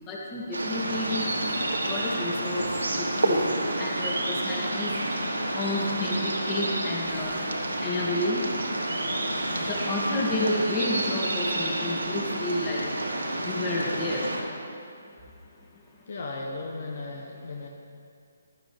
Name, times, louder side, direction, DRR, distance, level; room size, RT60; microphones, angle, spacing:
voice 1, 0.1-1.3 1.9-2.6 2.9-4.9 5.5-7.4 7.8-8.4 9.5-12.8 13.4-14.3, left 2 dB, 25° left, -4 dB, 2.4 m, -30 dB
sound 1, 0.5-14.4, right 2 dB, 70° right, 1.6 m, -34 dB
sound 2, 0.5-14.4, right 1 dB, 90° right, 2.1 m, -31 dB
voice 2, 16.1-17.7, left 3 dB, 55° left, 0 dB, 1.2 m, -36 dB
16.0 x 12.0 x 3.6 m, 2.5 s
figure-of-eight pair, 140°, 0 cm